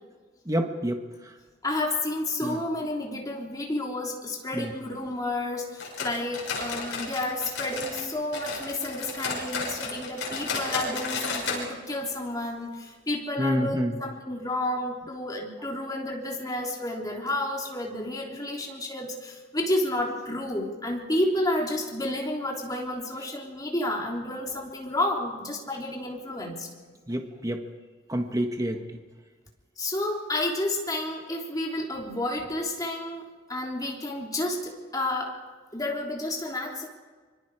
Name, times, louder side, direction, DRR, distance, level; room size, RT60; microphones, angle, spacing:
voice 1, 0.4-1.3 2.4-2.6 4.5-4.7 13.4-14.0 27.1-27.6 28.1-29.0, equal, 20° right, 4 dB, 1.5 m, -28 dB
voice 2, 1.6-26.7 29.8-35.3 35.7-36.9, left 1 dB, 20° left, -1 dB, 3.5 m, -31 dB
sound 1, 5.8-8.1 8.3-11.6 11.9-12.0 12.4-12.5 13.1-13.2, left 4 dB, 65° left, 6.3 m, -33 dB
24.5 x 24.5 x 4.9 m, 1.4 s
head